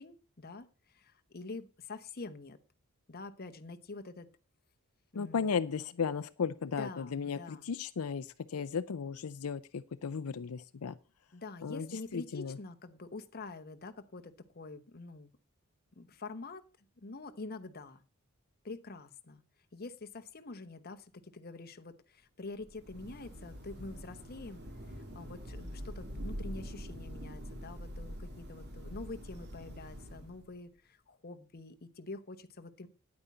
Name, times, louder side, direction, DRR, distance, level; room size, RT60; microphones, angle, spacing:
voice 1, 0.0-2.6 3.1-4.3 5.1-5.5 6.7-7.6 11.3-15.3 16.0-16.6 17.0-18.0 18.6-19.4 19.7-24.6 24.9-32.9, left 3 dB, 45° left, 9 dB, 1.0 m, -46 dB
voice 2, 5.1-11.0 11.6-12.6, left 6 dB, 90° left, 13 dB, 0.5 m, -35 dB
Thunder / Rain, 22.5-30.6, equal, 50° right, 2.5 m, -45 dB
9.7 x 8.8 x 5.5 m, 0.33 s
head